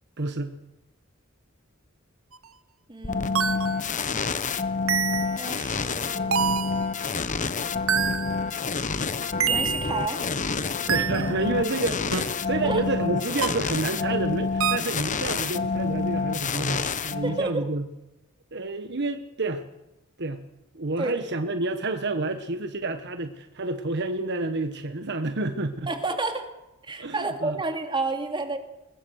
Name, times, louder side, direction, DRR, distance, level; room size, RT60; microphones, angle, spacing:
voice 1, 0.2-0.5 10.9-17.9 18.5-19.6 20.2-20.4 20.7-25.9 27.0-27.6, right 2 dB, 55° right, 8 dB, 1.2 m, -29 dB
sound 1, 2.3-2.4 3.3-3.8 4.9-5.5 6.3-6.9 7.9-8.4 9.4-10.0 10.9-11.3 12.1-12.2 13.4-13.7 14.6-15.0, right 7 dB, 75° right, 1.4 m, -26 dB
voice 2, 2.9-4.2 5.4-6.8 9.4-10.2 12.6-12.8 17.2-17.7 21.0-21.2 25.9-26.5 26.8-28.6, right 3 dB, 25° right, 5 dB, 2.7 m, -31 dB
sound 2, 3.0-17.7, left 4 dB, 35° left, 1.0 m, -28 dB
23.0 x 20.5 x 6.4 m, 0.99 s
head